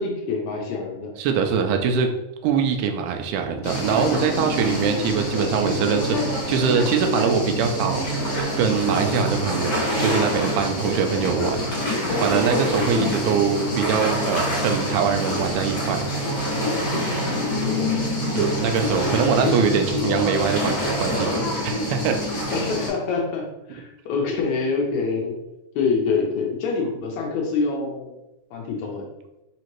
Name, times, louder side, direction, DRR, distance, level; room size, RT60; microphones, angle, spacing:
voice 1, 0.0-1.1 5.7-6.0 17.6-17.9 19.4-20.0 22.5-25.4 25.7-28.1 28.5-29.1, left 4 dB, 80° left, 0 dB, 1.7 m, -26 dB
voice 2, 1.2-2.1 2.4-6.1 6.5-16.1 18.4-22.2, right 6 dB, 80° right, 5 dB, 1.9 m, -23 dB
sound 1, 3.6-22.9, equal, 50° left, 1.6 m, -25 dB
5.1 x 2.8 x 3.0 m, 0.98 s
omnidirectional pair, 3.7 m